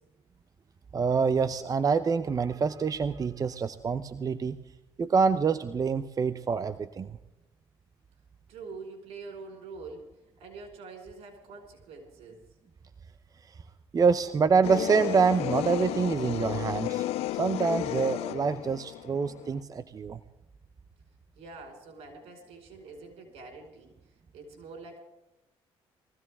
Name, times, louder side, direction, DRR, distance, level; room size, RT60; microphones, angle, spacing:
voice 1, 0.9-4.6 5.0-7.2 13.9-17.1 17.4-20.2, right 5 dB, 35° right, 11 dB, 0.8 m, -26 dB
voice 2, 8.5-10.1 10.4-12.4 21.4-25.0, right 4 dB, 80° right, 3 dB, 5.3 m, -45 dB
sound 1, 14.6-19.6, left 15 dB, 80° left, 0.5 m, -33 dB
22.0 x 16.0 x 3.7 m, 0.96 s
cardioid pair, 90°, 10 cm